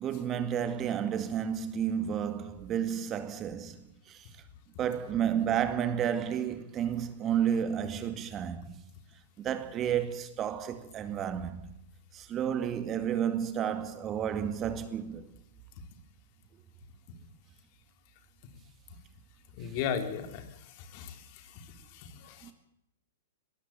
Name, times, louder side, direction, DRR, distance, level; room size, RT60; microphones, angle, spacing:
voice 1, 0.0-4.3 4.8-8.7 9.4-11.6 12.1-15.3 22.4-22.5, right 9 dB, 30° right, 2.2 m, -31 dB
voice 2, 19.6-20.4 20.9-21.2 21.9-22.5, left 7 dB, 45° left, 3.4 m, -35 dB
22.0 x 16.0 x 7.5 m
hypercardioid pair, 115°, 0 cm